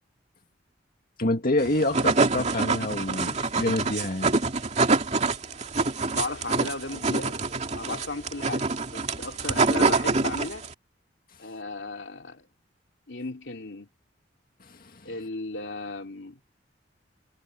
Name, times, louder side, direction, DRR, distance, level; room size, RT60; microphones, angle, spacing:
voice 1, 1.2-4.3 14.6-15.1, left 1 dB, 55° left, 2.1 m, -27 dB
sound 1, 1.6-10.7, right 3 dB, 40° right, 2.4 m, -25 dB
voice 2, 6.1-8.7 8.9-10.6 11.4-12.5 13.1-13.9 15.0-16.4, left 2 dB, 75° left, 2.6 m, -35 dB
head